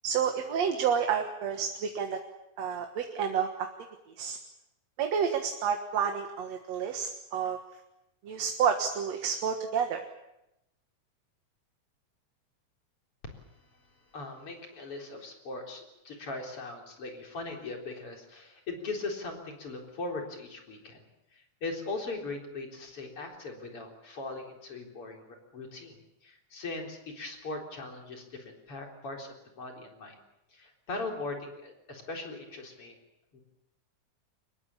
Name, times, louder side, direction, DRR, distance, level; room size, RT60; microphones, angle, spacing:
voice 1, 0.0-2.2 2.6-3.7 4.2-4.4 5.0-7.6 8.2-10.0, right 7 dB, 65° right, 5 dB, 2.6 m, -29 dB
voice 2, 13.2-30.2 30.5-32.9 33.3-33.4, left 3 dB, 45° left, 2 dB, 4.8 m, -40 dB
25.0 x 21.0 x 8.6 m, 0.88 s
omnidirectional pair, 3.5 m